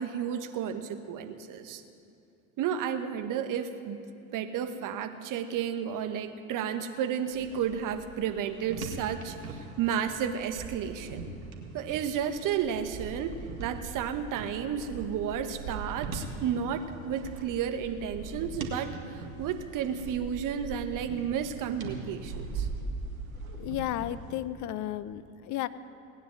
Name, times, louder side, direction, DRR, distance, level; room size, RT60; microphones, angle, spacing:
voice 1, 0.0-1.8 2.6-4.0 4.3-11.3 11.7-22.7, right 8 dB, 50° right, 8 dB, 1.4 m, -32 dB
sound 1, 7.3-24.4, right 3 dB, 90° right, 1.9 m, -41 dB
voice 2, 23.4-25.7, left 13 dB, 45° left, 15 dB, 0.8 m, -34 dB
18.5 x 9.8 x 7.7 m, 2.6 s
hypercardioid pair, 80°, 41 cm